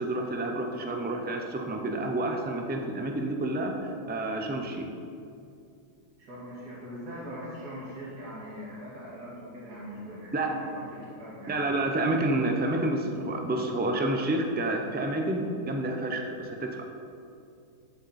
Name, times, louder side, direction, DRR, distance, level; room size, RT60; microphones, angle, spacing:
voice 1, 0.0-4.9 10.3-10.5 11.5-16.8, right 2 dB, 15° right, 3 dB, 0.3 m, -29 dB
voice 2, 6.2-11.6, equal, 80° right, -7 dB, 2.5 m, -41 dB
11.0 x 7.3 x 4.2 m, 2.5 s
omnidirectional pair, 1.7 m